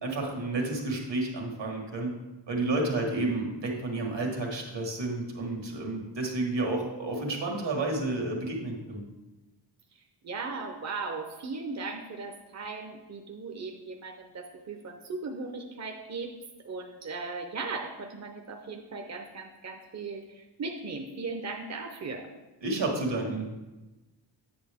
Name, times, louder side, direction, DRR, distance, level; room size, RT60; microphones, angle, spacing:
voice 1, 0.0-2.1 2.5-9.0 22.6-23.5, right 2 dB, 70° right, 1 dB, 1.7 m, -31 dB
voice 2, 9.9-16.3 16.6-22.3, right 4 dB, 40° right, 3 dB, 0.7 m, -38 dB
8.8 x 6.7 x 3.5 m, 1.1 s
wide cardioid pair, 120°, 44 cm